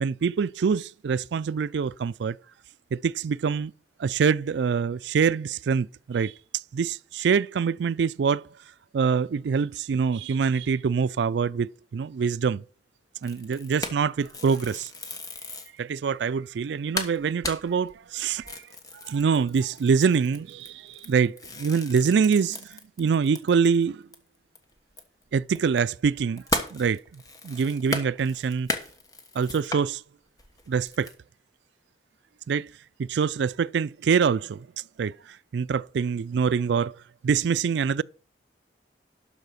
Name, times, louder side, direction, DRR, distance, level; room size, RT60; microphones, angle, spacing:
voice 1, 0.0-2.4 2.9-3.7 4.0-6.3 6.7-8.4 8.9-12.6 13.2-14.9 15.8-18.6 19.0-24.0 25.3-26.4 26.7-28.7 29.4-30.0 30.7-31.1 32.5-32.7 33.0-34.7 35.0-36.9 37.2-38.0, right 6 dB, 75° right, 0.4 m, -25 dB
sound 1, 13.2-15.8 16.3-16.4 16.6-16.7 17.0-23.8 24.1-24.2 24.6-29.9 30.4-31.1, left 2 dB, 20° left, 1.3 m, -36 dB
12.0 x 4.9 x 6.3 m
head